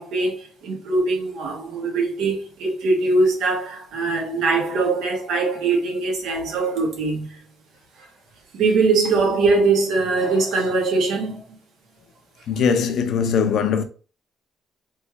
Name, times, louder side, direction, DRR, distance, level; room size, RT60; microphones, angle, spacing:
voice 1, 0.0-7.4 8.5-11.4, right 3 dB, 85° right, 1.6 m, -22 dB
voice 2, 12.5-13.8, left 6 dB, 65° left, 0.7 m, -20 dB
4.3 x 3.3 x 3.4 m
cardioid pair, 115°, 0 cm